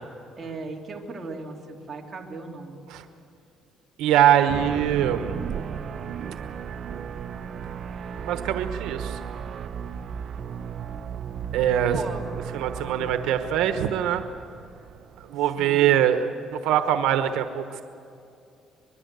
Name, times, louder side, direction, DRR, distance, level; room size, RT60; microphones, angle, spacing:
voice 1, 0.4-2.8 11.9-12.3 12.8-13.1 15.6-15.9, right 3 dB, 25° right, 0 dB, 2.8 m, -36 dB
voice 2, 4.0-5.3 8.2-9.2 11.5-12.0 12.5-14.2 15.3-16.3 16.5-17.8, right 10 dB, 85° right, 8 dB, 1.1 m, -22 dB
sound 1, 4.5-15.7, right 7 dB, 45° right, 0.9 m, -35 dB
24.0 x 21.5 x 8.1 m, 2.7 s
cardioid pair, 135°, 0 cm